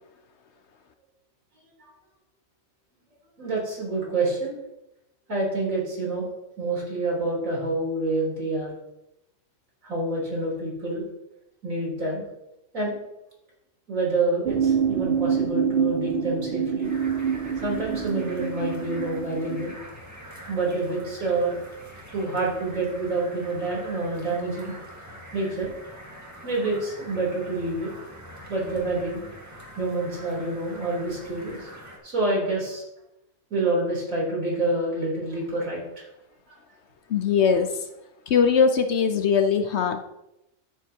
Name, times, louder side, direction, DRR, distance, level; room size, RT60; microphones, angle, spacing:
voice 1, 3.4-4.6 5.3-6.3 6.6-8.7 9.8-11.0 11.6-12.2 12.7-13.0 13.9-16.9 17.6-19.7 20.5-21.5 22.1-24.7 25.3-25.7 26.4-27.9 28.5-29.2 29.8-31.7 32.0-32.8 33.5-36.1 36.5-36.6, right 2 dB, 75° right, -4 dB, 4.0 m, -27 dB
sound 1, 14.5-19.8, right 7 dB, 60° right, 0.6 m, -26 dB
sound 2, 16.8-32.0, equal, 15° right, 1.8 m, -44 dB
voice 2, 37.1-37.7 38.3-40.0, left 6 dB, 60° left, 7 dB, 0.9 m, -21 dB
13.5 x 7.4 x 2.8 m, 0.90 s
omnidirectional pair, 1.4 m